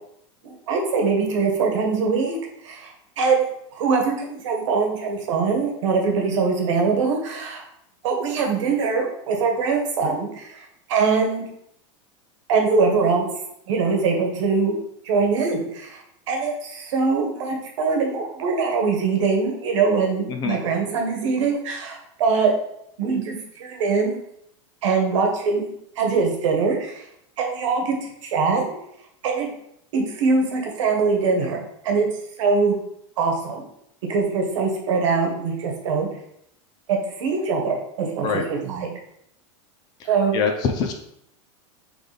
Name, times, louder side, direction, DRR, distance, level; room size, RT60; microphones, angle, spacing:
voice 1, 0.4-2.4 2.6-3.4 3.7-7.6 8.0-11.5 12.5-13.3 13.7-14.8 15.0-22.5 23.0-24.2 24.8-27.0 27.4-28.7 29.2-29.5 29.9-31.6 31.8-32.1 32.4-32.7 33.2-33.6 34.1-36.1 36.9-38.9 40.0-40.4, right 4 dB, 75° right, 2 dB, 1.2 m, -22 dB
voice 2, 20.3-20.6 38.2-38.5 40.0-40.1 40.3-40.9, left 5 dB, 25° left, 4 dB, 0.4 m, -24 dB
3.9 x 3.4 x 3.3 m, 0.73 s
supercardioid pair, 165°, 16 cm